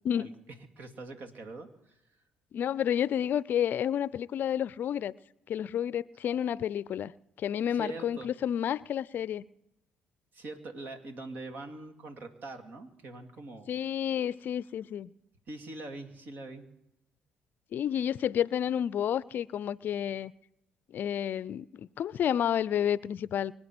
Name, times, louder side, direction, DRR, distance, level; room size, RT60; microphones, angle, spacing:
voice 1, 0.8-2.0 7.7-8.3 10.3-13.7 15.5-16.6, right 2 dB, 55° right, 2.4 m, -43 dB
voice 2, 2.5-5.1 5.5-7.1 7.4-9.4 13.7-15.1 17.7-20.3 20.9-23.5, left 9 dB, 60° left, 0.5 m, -30 dB
25.0 x 8.7 x 6.1 m
supercardioid pair, 60°, 4 cm